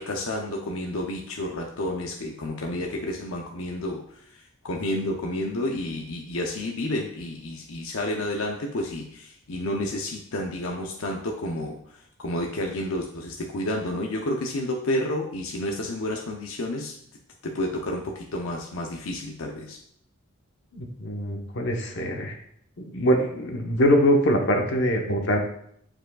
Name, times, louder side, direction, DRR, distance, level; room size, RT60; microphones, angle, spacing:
voice 1, 0.0-4.0 4.3-11.8 12.2-16.9 17.4-19.8, left 1 dB, 80° left, 1 dB, 0.7 m, -30 dB
voice 2, 20.7-22.3 22.9-25.4, equal, 60° left, 2 dB, 1.0 m, -23 dB
8.7 x 4.9 x 2.3 m, 0.70 s
head